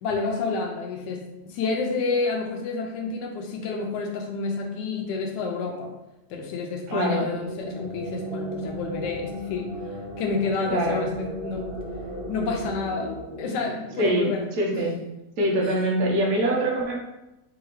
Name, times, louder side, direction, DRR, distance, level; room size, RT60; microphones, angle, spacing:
voice 1, 0.0-5.9 6.3-9.7 10.2-11.7 12.3-14.5 14.7-14.9 15.6-15.8, left 4 dB, 80° left, 2 dB, 1.3 m, -29 dB
voice 2, 6.9-7.3 10.7-11.1 14.0-15.0 15.4-17.0, right 1 dB, 60° right, -2 dB, 1.4 m, -24 dB
sound 1, 7.2-14.6, equal, 85° right, 0.5 m, -36 dB
4.8 x 3.1 x 3.1 m, 0.97 s
omnidirectional pair, 1.9 m